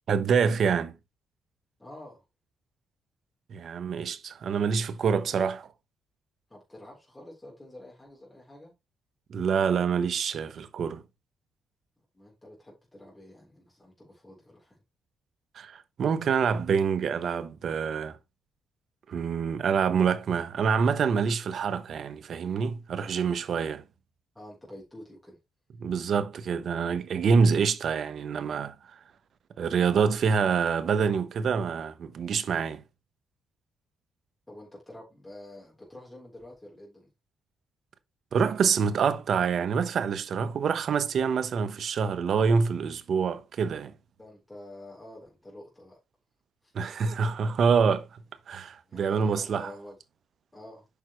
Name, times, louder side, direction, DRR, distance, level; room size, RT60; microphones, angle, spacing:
voice 1, 0.1-1.0 3.5-5.6 9.3-11.0 15.5-18.2 19.1-23.8 25.8-28.7 29.6-32.8 38.3-43.9 46.7-48.1 48.5-49.7, right 6 dB, 60° right, 1.1 m, -26 dB
voice 2, 1.8-2.2 5.3-5.4 6.5-8.7 12.1-14.8 24.3-25.4 34.5-37.1 44.2-46.0 46.6-46.7 48.8-50.0 50.5-50.9, left 1 dB, 10° left, 4.0 m, -48 dB
8.4 x 6.1 x 3.2 m
cardioid pair, 90°, 0 cm